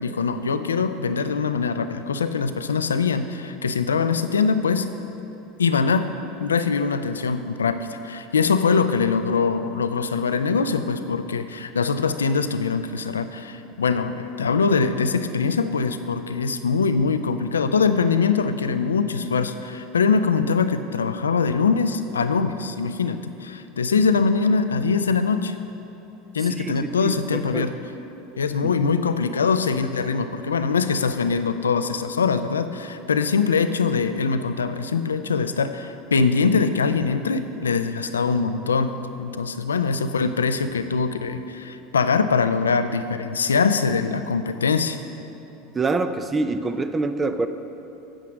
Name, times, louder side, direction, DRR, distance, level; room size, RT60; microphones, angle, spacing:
voice 1, 0.0-4.9 5.6-6.1 6.4-25.6 26.3-27.7 28.4-45.0, left 5 dB, 85° left, 10 dB, 0.4 m, -23 dB
voice 2, 27.0-27.7 28.6-29.0 45.7-47.5, right 3 dB, 20° right, 9 dB, 0.5 m, -26 dB
8.7 x 7.8 x 6.2 m, 2.9 s
figure-of-eight pair, 80°, 0 cm